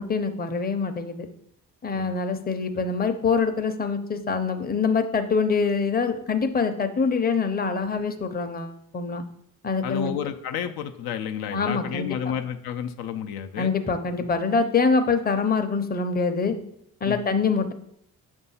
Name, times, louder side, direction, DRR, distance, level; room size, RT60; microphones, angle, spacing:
voice 1, 0.0-1.3 1.8-9.2 9.6-10.1 11.5-12.3 13.6-16.6 17.0-17.7, left 5 dB, 25° left, 7 dB, 0.6 m, -25 dB
voice 2, 9.8-13.7 17.1-17.2, left 8 dB, 85° left, 7 dB, 0.6 m, -31 dB
6.9 x 2.7 x 5.5 m, 0.71 s
cardioid pair, 80°, 36 cm